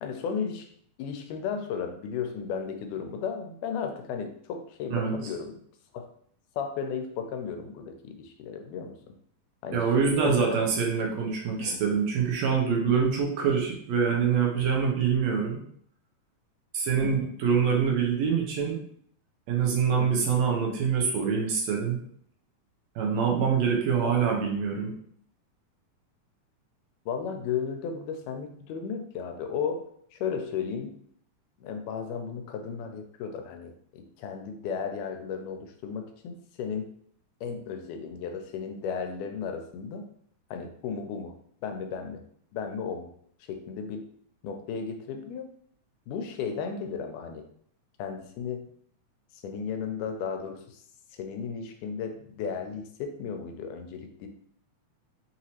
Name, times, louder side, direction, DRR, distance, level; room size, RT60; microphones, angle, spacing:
voice 1, 0.0-0.7 1.0-5.6 5.9-6.1 6.6-9.1 9.6-10.6 11.6-11.8 17.0-17.3 20.0-20.2 24.0-24.2 27.1-31.0 31.6-36.9 37.4-40.1 40.5-41.3 41.6-42.2 42.5-43.1 43.5-44.1 44.4-45.4 46.1-47.4 48.0-48.7 49.4-50.8 51.1-54.3, left 6 dB, 80° left, 5 dB, 2.0 m, -34 dB
voice 2, 9.7-15.6 16.7-18.8 19.5-22.0 23.0-24.9, right 6 dB, 75° right, -1 dB, 1.7 m, -25 dB
5.2 x 2.9 x 2.8 m, 0.63 s
omnidirectional pair, 3.6 m